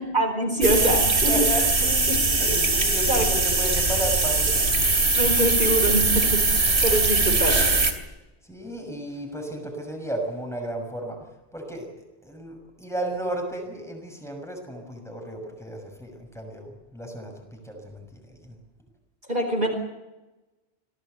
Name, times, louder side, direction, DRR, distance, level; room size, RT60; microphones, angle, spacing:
voice 1, 0.1-1.4 2.1-2.2 3.1-3.2 5.2-6.2 6.5-7.6 19.3-19.7, right 1 dB, 50° right, 4 dB, 4.8 m, -24 dB
sound 1, 0.6-7.9, right 3 dB, 80° right, 3.1 m, -21 dB
voice 2, 1.3-4.9 8.4-11.2 11.5-11.9 12.2-18.6, right 1 dB, 5° left, 3 dB, 6.2 m, -34 dB
26.5 x 19.0 x 8.2 m, 1.0 s
omnidirectional pair, 1.1 m